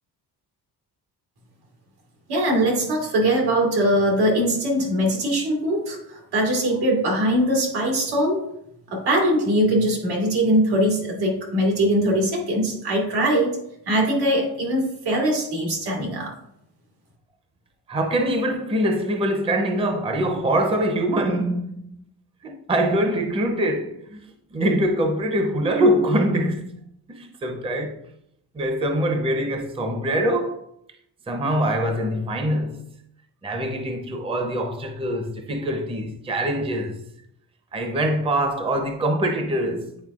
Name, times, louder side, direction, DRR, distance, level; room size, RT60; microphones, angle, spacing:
voice 1, 2.3-8.4 8.9-13.6 13.9-16.3, right 1 dB, 85° right, 2.3 m, -21 dB
voice 2, 17.9-22.0 22.4-24.2 24.5-28.0 28.5-30.6 31.3-32.8 33.4-37.0 37.7-40.0, right 1 dB, 15° right, 0.6 m, -24 dB
9.3 x 4.3 x 2.4 m
cardioid pair, 135°, 38 cm